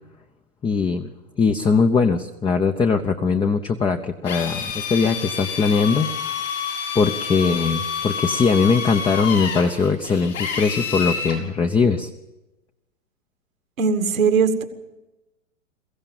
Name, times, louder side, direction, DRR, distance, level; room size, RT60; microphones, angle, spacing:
voice 1, 0.6-1.1 1.4-6.1 6.9-12.1, left 5 dB, 10° left, 5 dB, 0.8 m, -20 dB
Drill, 4.2-11.4, left 6 dB, 70° left, 6.8 m, -28 dB
voice 2, 13.8-14.6, right 5 dB, 75° right, 8 dB, 2.3 m, -19 dB
22.5 x 15.5 x 7.3 m, 1.0 s
hypercardioid pair, 115°, 40 cm